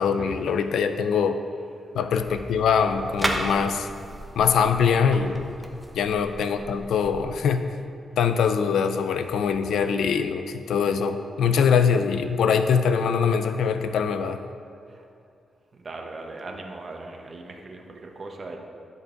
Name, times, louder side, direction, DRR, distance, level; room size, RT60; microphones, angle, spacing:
voice 1, 0.0-1.4 1.9-3.9 4.4-5.5 5.9-7.6 8.2-14.4, left 6 dB, 90° left, 9 dB, 0.4 m, -23 dB
sound 1, 2.2-7.2, right 1 dB, 5° right, 0.9 m, -34 dB
voice 2, 15.7-18.6, right 2 dB, 40° right, 2 dB, 1.1 m, -40 dB
10.5 x 5.4 x 3.9 m, 2.4 s
cardioid pair, 95°, 0 cm